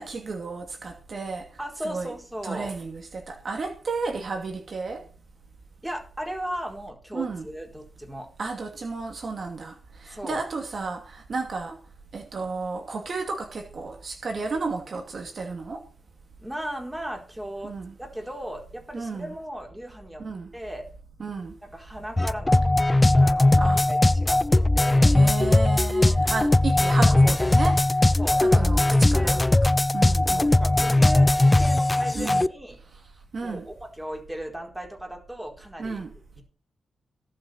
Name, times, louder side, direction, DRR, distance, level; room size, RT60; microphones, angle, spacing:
voice 1, 0.0-1.4 1.8-2.1 2.4-5.0 7.1-7.5 8.4-9.7 10.0-11.8 12.1-15.8 17.6-17.9 18.9-19.3 20.2-20.5 21.2-21.5 23.6-23.8 25.1-27.8 28.4-29.4 29.9-30.5 32.1-32.5 33.3-33.6 35.8-36.1, right 4 dB, 55° right, 2.5 m, -32 dB
voice 2, 1.6-2.7 5.8-8.3 10.1-10.4 16.4-20.2 20.5-20.9 21.6-22.8 23.2-25.1 26.8-26.9 28.2-29.4 30.3-32.8 33.4-36.0 36.4-36.5, equal, 10° right, 4.4 m, -36 dB
sound 1, 22.2-32.5, left 2 dB, 20° left, 0.5 m, -19 dB
18.5 x 6.8 x 4.6 m
cardioid pair, 80°, 0 cm